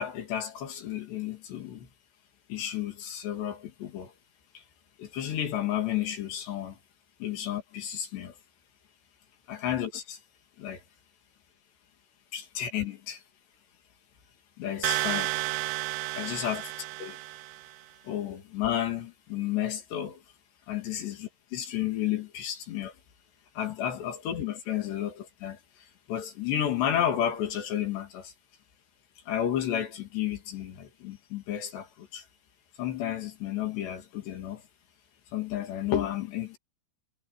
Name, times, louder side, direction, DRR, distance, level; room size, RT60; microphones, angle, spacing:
voice 1, 0.0-1.9 2.5-4.1 4.5-4.6 5.0-6.8 7.2-8.4 9.5-10.2 10.6-10.8 12.3-13.2 14.6-15.4 16.1-16.7 17.0-17.2 18.0-20.2 20.7-21.1 21.5-23.0 23.6-28.3 29.3-32.3 32.8-34.6 35.3-36.6, left 10 dB, 60° left, 4.3 m, -32 dB
sound 1, 14.8-17.7, right 23 dB, 85° right, 3.0 m, -32 dB
omnidirectional pair, 5.8 m